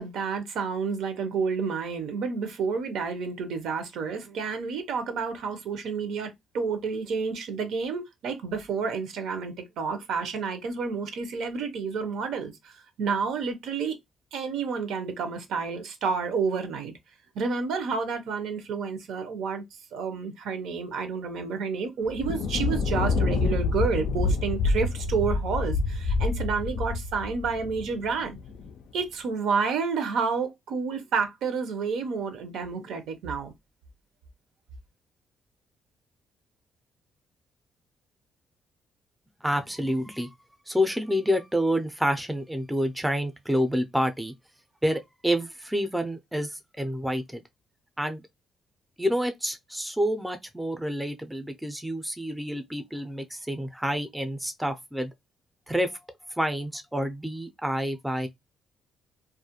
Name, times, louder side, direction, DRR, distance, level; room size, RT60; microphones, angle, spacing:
voice 1, 0.0-14.0 14.3-16.9 17.3-19.6 19.9-28.4 28.9-33.5, right 5 dB, 80° right, 0.6 m, -30 dB
Thunder, 22.1-28.7, left 3 dB, 75° left, 0.3 m, -27 dB
voice 2, 39.4-40.3 40.7-44.3 44.8-47.4 48.0-48.2 49.0-55.1 55.7-56.0 56.4-58.3, equal, 5° right, 0.4 m, -28 dB
2.3 x 2.1 x 2.8 m
cardioid pair, 90°, 0 cm